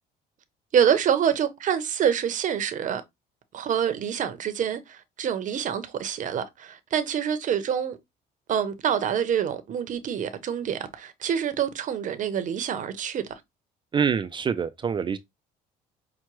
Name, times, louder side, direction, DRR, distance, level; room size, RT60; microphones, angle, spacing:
voice 1, 0.7-3.0 3.5-8.0 8.5-13.3, right 8 dB, 50° right, 0.7 m, -26 dB
voice 2, 13.9-15.2, right 6 dB, 30° right, 0.3 m, -25 dB
5.8 x 2.1 x 3.0 m
cardioid pair, 110°, 17 cm